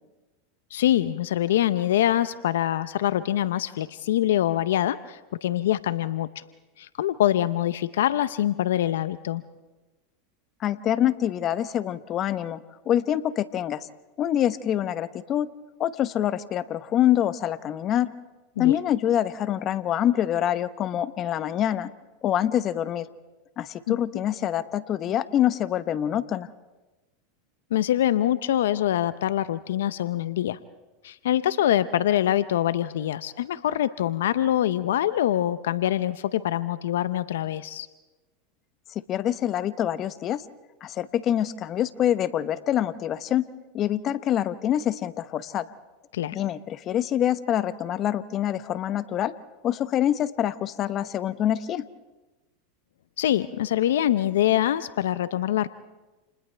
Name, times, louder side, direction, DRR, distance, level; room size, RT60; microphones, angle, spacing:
voice 1, 0.7-6.4 6.8-9.4 18.6-18.8 23.9-24.0 27.7-30.6 31.0-37.9 46.1-46.4 53.2-55.7, left 12 dB, 80° left, 14 dB, 0.7 m, -24 dB
voice 2, 10.6-13.9 14.2-15.5 15.8-18.1 18.6-21.9 22.2-23.1 23.6-26.5 38.9-40.4 40.8-43.5 43.7-45.7 46.3-49.3 49.6-51.9, left 11 dB, 40° left, 13 dB, 1.0 m, -25 dB
29.5 x 29.0 x 3.4 m, 1.1 s
hypercardioid pair, 105°, 0 cm